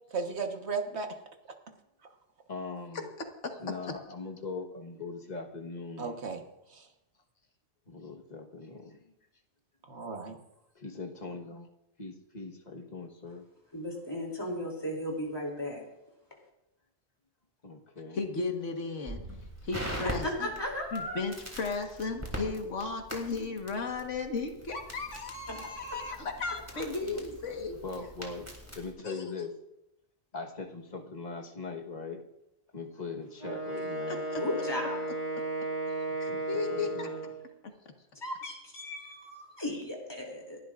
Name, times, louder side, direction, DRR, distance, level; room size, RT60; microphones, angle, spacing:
voice 1, 0.1-1.1 6.0-6.4 6.7-6.9 9.9-10.4, right 4 dB, 65° right, 4 dB, 1.6 m, -35 dB
voice 2, 2.5-3.1 3.6-6.1 7.9-9.0 10.7-11.7 12.0-13.4 17.6-18.2 27.8-28.4 28.7-29.5 30.3-32.2 32.7-34.2 36.3-37.3, left 4 dB, 35° left, 3 dB, 1.4 m, -41 dB
voice 3, 3.4-3.9 18.1-19.2 19.6-20.5 20.9-27.8 29.0-29.3 34.1-34.4 35.3-35.4 36.2-37.1, left 4 dB, 80° left, 4 dB, 1.8 m, -35 dB
voice 4, 13.7-15.8 20.2-21.2 25.5-26.0 34.4-35.0 38.2-40.6, left 1 dB, 20° left, -1 dB, 3.2 m, -36 dB
Crackle, 19.1-28.9, right 1 dB, 10° right, 3.0 m, -42 dB
Wind instrument woodwind instrument, 33.4-37.4, right 2 dB, 90° right, 4.5 m, -35 dB
29.5 x 11.5 x 2.5 m, 0.89 s
omnidirectional pair, 1.2 m